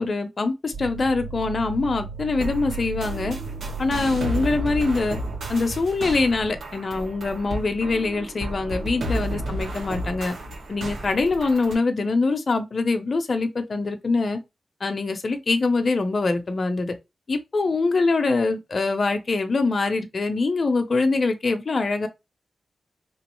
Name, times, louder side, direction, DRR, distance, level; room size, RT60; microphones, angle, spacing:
voice 1, 0.0-3.4 3.8-5.2 5.5-10.3 10.7-14.4 14.8-16.9 17.3-22.1, left 3 dB, 50° left, 0.7 m, -24 dB
sound 1, 0.7-6.5, right 4 dB, 60° right, 0.4 m, -36 dB
sound 2, 2.4-11.7, right 1 dB, 85° right, 1.9 m, -32 dB
4.7 x 3.1 x 3.1 m
cardioid pair, 65°, 0 cm